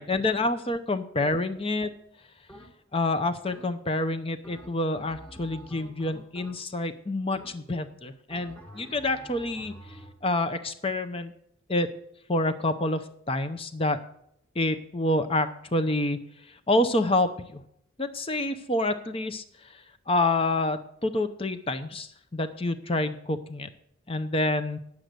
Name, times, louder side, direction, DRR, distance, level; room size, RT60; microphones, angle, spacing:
voice 1, 0.0-1.9 2.9-9.7 10.2-11.3 11.7-11.9 12.3-13.0 13.3-14.0 14.6-16.2 16.7-17.6 18.0-19.4 20.1-23.7 24.1-24.8, left 2 dB, 25° left, 10 dB, 0.7 m, -27 dB
sound 1, 2.5-3.0 3.5-4.0 4.4-6.9 7.3-7.9 8.3-10.2, right 1 dB, 10° left, 1.4 m, -48 dB
9.8 x 7.8 x 6.7 m, 0.73 s
head